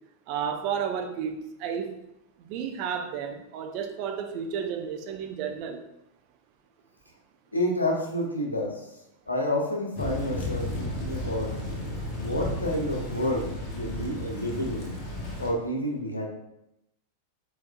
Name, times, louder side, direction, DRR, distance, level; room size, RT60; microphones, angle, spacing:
voice 1, 0.3-2.0 2.4-5.8, right 7 dB, 45° right, 5 dB, 0.6 m, -32 dB
voice 2, 7.5-8.9 9.3-11.5 12.2-13.5 13.7-14.9 15.4-16.3, left 1 dB, 80° left, 0 dB, 0.9 m, -29 dB
Thunder / Rain, 10.0-15.5, left 1 dB, 40° left, 0.9 m, -33 dB
4.7 x 4.2 x 2.4 m, 0.84 s
figure-of-eight pair, 90°, 0 cm